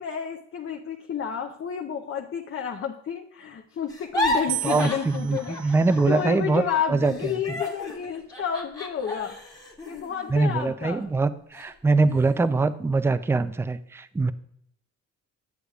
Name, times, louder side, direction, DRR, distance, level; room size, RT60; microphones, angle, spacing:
voice 1, 0.0-5.7 6.1-9.4 9.9-11.1, left 8 dB, 45° left, 1 dB, 0.7 m, -31 dB
sound 1, 3.9-6.4 6.7-11.0 11.5-11.7 12.1-12.6, left 1 dB, 10° left, 1.4 m, -33 dB
sound 2, 4.5-6.7 7.5-8.0, right 14 dB, 60° right, 0.5 m, -37 dB
voice 2, 4.6-6.6 6.9-7.3 10.3-14.3, right 3 dB, 10° right, 13 dB, 0.3 m, -23 dB
8.2 x 7.8 x 2.3 m, 0.73 s
cardioid pair, 90°, 30 cm